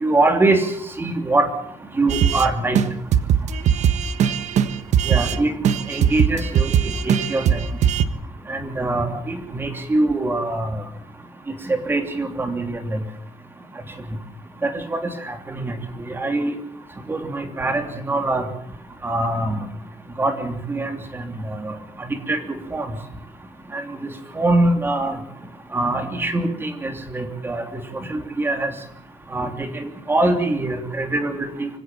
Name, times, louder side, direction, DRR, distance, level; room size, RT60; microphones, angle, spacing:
voice 1, 0.0-0.7 1.0-1.5 2.0-2.8 5.0-5.5 5.9-6.7 7.0-7.6 8.5-10.8 11.7-13.0 14.6-15.0 15.3-15.7 16.1-16.5 17.1-18.4 19.0-19.6 20.2-22.9 23.7-23.8 24.4-25.1 25.7-27.6 28.1-28.7 29.3-31.7, right 2 dB, 15° right, 6 dB, 3.1 m, -23 dB
sound 1, 2.1-2.5 2.7-2.9 3.1-5.4 5.6-8.0, right 8 dB, 70° right, 1.5 m, -19 dB
25.0 x 17.0 x 7.2 m, 0.68 s
cardioid pair, 170°, 12 cm